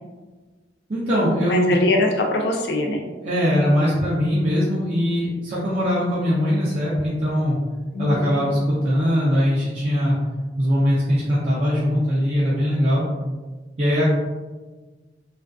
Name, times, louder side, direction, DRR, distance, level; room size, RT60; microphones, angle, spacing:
voice 1, 0.9-1.8 3.2-7.6 8.0-10.2 10.6-13.0 13.8-14.1, equal, 40° right, -9 dB, 0.5 m, -21 dB
voice 2, 1.5-3.1 7.9-8.4, left 2 dB, 75° left, 1 dB, 0.4 m, -23 dB
2.4 x 2.3 x 2.3 m, 1.3 s
head